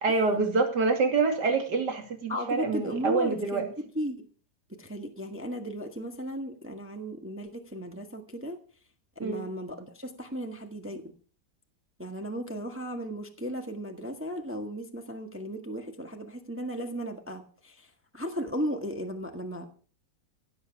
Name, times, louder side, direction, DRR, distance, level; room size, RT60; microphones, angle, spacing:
voice 1, 0.0-3.6 9.2-9.4, right 4 dB, 60° right, 5 dB, 3.1 m, -26 dB
voice 2, 2.3-4.3 4.7-8.6 9.1-11.1 12.0-19.7, equal, 5° right, 5 dB, 1.4 m, -36 dB
16.5 x 7.9 x 7.1 m, 0.41 s
omnidirectional pair, 2.1 m